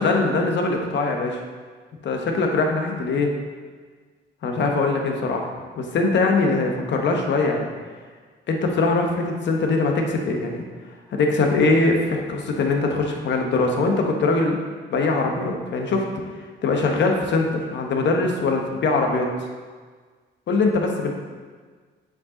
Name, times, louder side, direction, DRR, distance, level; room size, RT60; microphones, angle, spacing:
voice 1, 0.0-1.4 2.0-3.3 4.4-5.5 5.8-7.7 8.5-10.6 11.1-14.6 14.9-16.0 16.6-19.3 20.5-21.1, left 3 dB, 65° left, 2 dB, 1.1 m, -22 dB
6.9 x 5.0 x 3.8 m, 1.5 s
cardioid pair, 90°, 20 cm